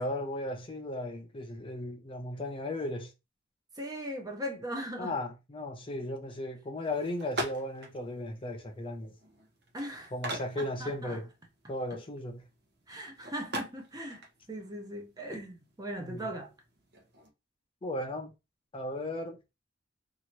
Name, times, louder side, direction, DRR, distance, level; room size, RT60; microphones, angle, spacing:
voice 1, 0.0-3.1 5.0-9.1 10.1-11.3 11.7-12.4 16.0-16.3 17.8-18.3 18.7-19.4, left 1 dB, 30° left, 0.5 m, -36 dB
voice 2, 3.8-5.2 9.7-10.1 10.5-11.2 12.9-16.5, equal, 20° right, 0.6 m, -39 dB
sound 1, 6.8-17.3, right 1 dB, 60° right, 0.9 m, -44 dB
2.8 x 2.5 x 2.9 m
head